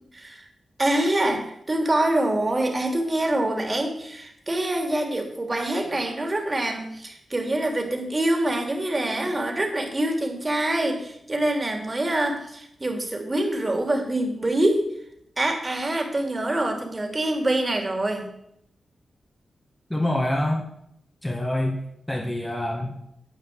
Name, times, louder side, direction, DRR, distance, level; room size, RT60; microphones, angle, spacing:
voice 1, 0.1-0.4 0.8-14.9 15.4-18.3, right 1 dB, 25° right, 3 dB, 3.1 m, -25 dB
voice 2, 19.9-20.7 21.2-21.8 22.1-22.9, left 1 dB, 10° left, -1 dB, 2.2 m, -25 dB
10.5 x 8.8 x 8.0 m, 0.74 s
cardioid pair, 90°, 0 cm